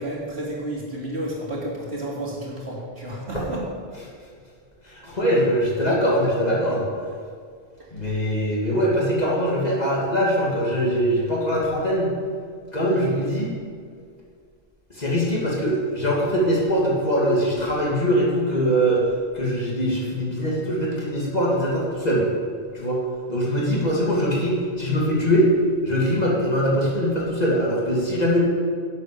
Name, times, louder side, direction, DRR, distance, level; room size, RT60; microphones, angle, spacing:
voice 1, 0.0-3.6 7.8-7.9, right 1 dB, 80° right, -4 dB, 3.3 m, -31 dB
voice 2, 4.8-6.9 7.9-12.1 12.7-13.5 14.9-19.0 19.3-22.3 22.7-23.0 23.3-25.5 25.8-28.4, equal, 40° left, -4 dB, 2.8 m, -22 dB
11.0 x 8.3 x 7.1 m, 2.1 s
omnidirectional pair, 1.1 m